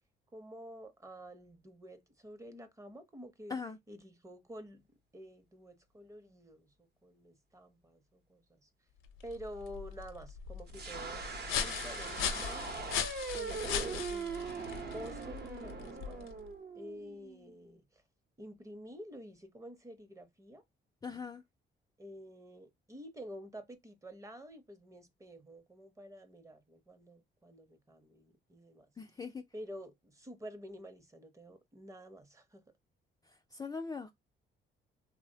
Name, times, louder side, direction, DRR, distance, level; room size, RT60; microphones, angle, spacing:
voice 1, 0.3-3.6 3.9-4.8 5.1-8.7 9.2-16.4 16.7-18.0 18.4-20.6 22.0-28.9 29.5-32.6, equal, 15° right, 0.7 m, -49 dB
sound 1, 9.0-16.5, left 8 dB, 90° left, 0.6 m, -39 dB
sound 2, 10.7-17.5, right 4 dB, 55° right, 0.8 m, -41 dB
voice 2, 21.0-21.4 29.0-29.4 33.5-34.1, left 5 dB, 20° left, 0.3 m, -40 dB
3.1 x 2.0 x 2.7 m
cardioid pair, 90°, 20 cm